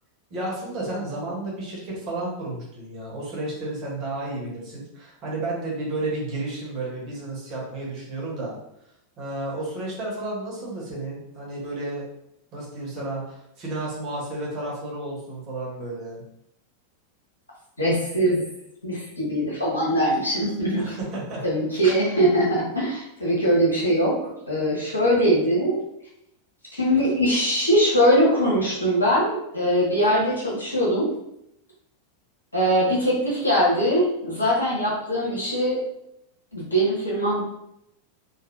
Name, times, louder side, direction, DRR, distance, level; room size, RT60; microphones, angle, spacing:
voice 1, 0.3-8.6 9.2-12.0 12.5-16.2 20.8-21.4, right 2 dB, 35° right, -4 dB, 1.2 m, -32 dB
voice 2, 17.8-18.4 18.8-21.0 21.4-24.2 24.5-25.8 26.7-31.1 32.5-35.8 36.5-37.4, equal, 80° left, -6 dB, 1.2 m, -22 dB
3.1 x 2.3 x 2.7 m, 0.80 s
figure-of-eight pair, 90°, 0 cm